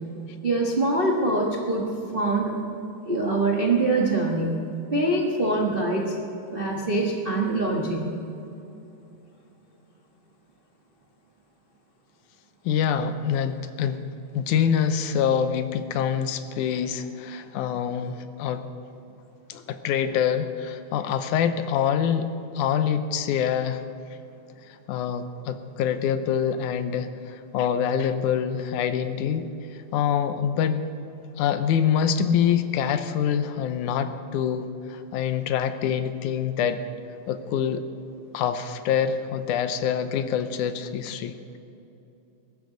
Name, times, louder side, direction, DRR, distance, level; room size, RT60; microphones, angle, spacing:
voice 1, 0.4-1.9 2.1-2.5 3.0-4.6 4.9-6.1 6.5-8.1, right 2 dB, 90° right, -2 dB, 0.4 m, -24 dB
voice 2, 12.7-14.0 14.4-18.7 19.5-22.3 22.6-23.8 24.9-29.5 29.9-30.8 31.4-36.8 37.3-37.8 38.3-41.4, left 8 dB, 80° left, 10 dB, 2.1 m, -25 dB
22.0 x 12.5 x 3.9 m, 2.9 s
omnidirectional pair, 3.6 m